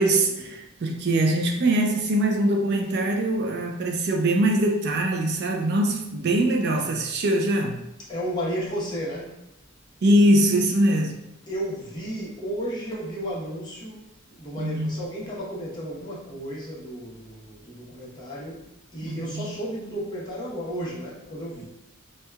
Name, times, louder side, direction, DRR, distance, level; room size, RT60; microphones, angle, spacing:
voice 1, 0.0-7.8 10.0-11.2 14.6-15.0 19.0-19.5, right 1 dB, 55° right, 3 dB, 0.4 m, -22 dB
voice 2, 8.1-9.3 11.5-14.0 14.3-21.6, equal, 20° left, -6 dB, 0.9 m, -33 dB
4.4 x 2.2 x 2.2 m, 0.86 s
head